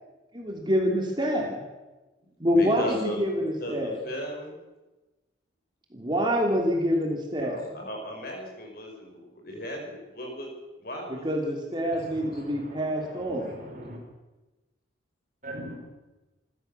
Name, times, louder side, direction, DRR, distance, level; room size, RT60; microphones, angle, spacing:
voice 1, 0.3-1.6 2.4-4.0 5.9-7.7 11.2-13.5, equal, 25° right, 1 dB, 3.0 m, -26 dB
voice 2, 2.5-4.6 7.4-10.5 10.8-12.4 13.4-13.5, equal, 50° left, 1 dB, 5.9 m, -37 dB
voice 3, 11.9-12.8 13.1-14.0 15.4-15.8, right 1 dB, 40° right, 1 dB, 5.0 m, -41 dB
27.5 x 14.0 x 6.8 m, 1.1 s
head